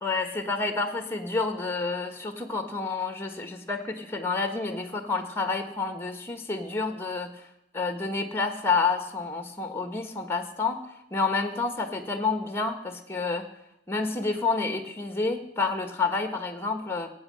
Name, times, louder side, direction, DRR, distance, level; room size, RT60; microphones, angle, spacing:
voice 1, 0.0-7.3 7.7-10.8 11.1-13.5 13.9-17.1, left 4 dB, 15° left, 7 dB, 1.4 m, -29 dB
15.5 x 8.6 x 7.6 m, 0.82 s
head